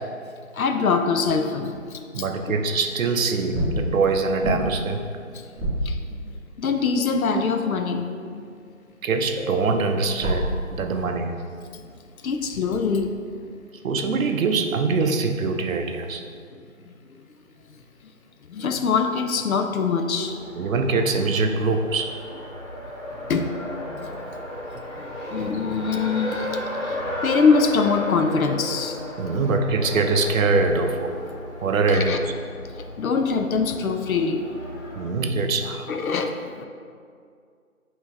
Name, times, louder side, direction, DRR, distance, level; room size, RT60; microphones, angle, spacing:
voice 1, 0.5-2.2 5.3-5.4 5.8-6.0 6.6-8.1 8.3-8.4 11.7-11.8 12.2-13.1 18.5-20.4 23.3-23.5 23.9-24.1 25.0-29.0 31.9-32.2 33.0-34.4 35.9-36.7, left 5 dB, 80° left, 5 dB, 0.6 m, -23 dB
voice 2, 2.1-5.1 6.9-7.4 9.0-11.3 13.8-16.2 20.6-22.2 29.2-31.1 31.6-32.2 34.9-35.9, right 4 dB, 70° right, 5 dB, 0.6 m, -23 dB
sound 1, 2.3-2.9 3.5-6.7 9.3-10.8, equal, 5° left, 1.2 m, -30 dB
Race car auto racing, 20.1-35.1, left 1 dB, 60° left, 1.4 m, -34 dB
5.4 x 2.9 x 3.4 m, 2.2 s
figure-of-eight pair, 165°, 41 cm